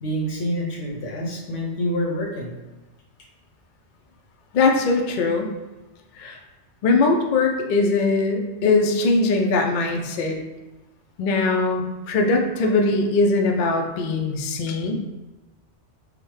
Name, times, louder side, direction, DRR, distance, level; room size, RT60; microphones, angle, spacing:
voice 1, 0.0-2.5 14.9-15.0, equal, 80° left, -1 dB, 1.1 m, -27 dB
voice 2, 4.5-5.5 6.2-6.4 6.8-10.4 11.2-15.0, left 3 dB, 60° left, 2 dB, 0.5 m, -21 dB
4.9 x 2.1 x 3.2 m, 1.1 s
omnidirectional pair, 1.2 m